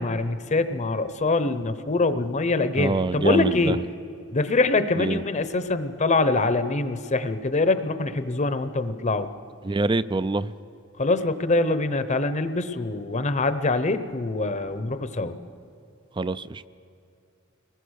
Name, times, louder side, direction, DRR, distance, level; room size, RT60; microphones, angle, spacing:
voice 1, 0.0-3.8 4.3-9.3 11.0-15.4, left 3 dB, 35° left, 11 dB, 0.8 m, -24 dB
voice 2, 2.8-3.8 5.0-5.2 9.6-10.5 16.2-16.7, right 3 dB, 25° right, 16 dB, 0.4 m, -25 dB
23.0 x 20.0 x 6.5 m, 2.6 s
head